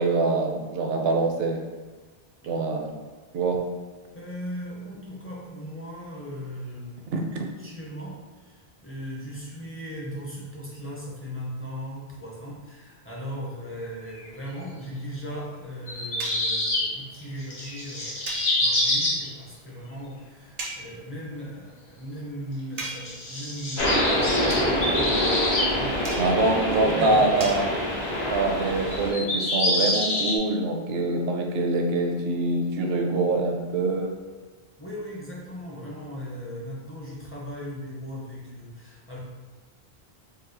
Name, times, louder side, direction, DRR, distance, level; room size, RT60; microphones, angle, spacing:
voice 1, 0.0-1.6 2.4-2.9 3.3-3.6 7.1-7.4 26.2-27.7 28.3-34.1, right 2 dB, 75° right, 2 dB, 0.8 m, -24 dB
voice 2, 4.1-7.1 7.6-26.3 26.8-27.3 34.8-39.2, equal, 15° left, -5 dB, 0.5 m, -38 dB
sound 1, 14.2-14.3 15.9-16.9 17.1-19.3 22.8-25.7 26.0-26.1 26.7-26.8 27.2-27.5 28.0-28.1 28.9-30.4, left 1 dB, 55° left, 0.8 m, -26 dB
sound 2, 16.2-16.6 18.3-19.0 20.6-20.9 22.8-23.3 24.5-24.7 26.0-26.5 27.4-27.6, right 3 dB, 50° right, 0.5 m, -36 dB
sound 3, 23.8-29.1, equal, 80° left, 1.3 m, -26 dB
4.1 x 2.3 x 2.6 m, 1.3 s
omnidirectional pair, 1.0 m